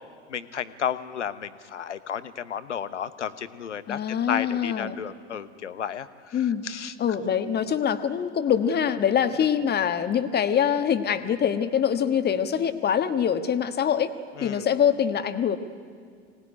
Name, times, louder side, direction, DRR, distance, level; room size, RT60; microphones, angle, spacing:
voice 1, 0.3-4.0 4.3-6.9 14.4-14.7, left 8 dB, 80° left, 14 dB, 1.1 m, -33 dB
voice 2, 3.9-4.9 6.3-6.6 7.0-14.1 14.4-15.6, left 8 dB, 30° left, 9 dB, 1.5 m, -24 dB
25.0 x 19.0 x 9.8 m, 2.1 s
figure-of-eight pair, 80°, 35 cm